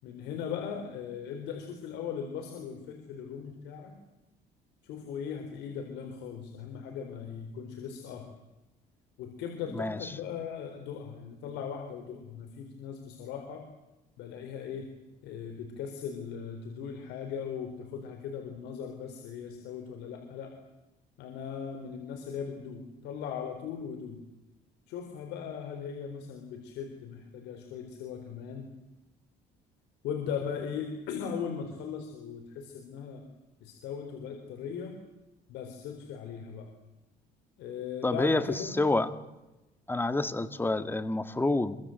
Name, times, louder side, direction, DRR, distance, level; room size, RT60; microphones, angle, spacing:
voice 1, 0.0-3.9 4.8-8.3 9.2-13.7 14.2-14.9 15.2-20.5 21.2-24.2 24.9-28.7 30.0-33.2 33.6-35.0 35.5-36.7 37.6-38.8, left 7 dB, 90° left, 4 dB, 4.0 m, -38 dB
voice 2, 38.0-38.4 38.8-39.1 39.9-41.8, left 2 dB, 10° left, 11 dB, 1.9 m, -27 dB
26.5 x 24.0 x 7.9 m, 0.98 s
cardioid pair, 110°, 17 cm